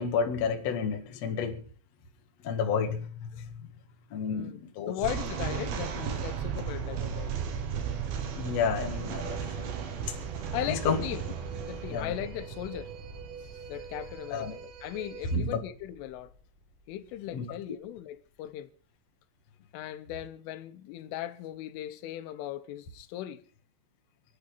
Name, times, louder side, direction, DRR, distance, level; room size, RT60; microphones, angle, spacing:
voice 1, 0.0-1.6 2.4-3.7 4.1-5.0 8.4-9.7 10.1-10.2 10.7-11.0 11.9-12.1 14.3-14.5 15.3-15.6 17.3-17.8, left 5 dB, 55° left, 2.0 m, -31 dB
voice 2, 4.9-7.3 10.5-11.2 11.7-12.9 13.7-16.3 16.9-18.7 19.7-23.4, left 12 dB, 85° left, 3.4 m, -38 dB
sound 1, 5.0-16.3, right 7 dB, 80° right, 4.4 m, -36 dB
sound 2, 8.7-15.4, right 6 dB, 55° right, 2.8 m, -48 dB
28.0 x 9.7 x 4.0 m
omnidirectional pair, 5.6 m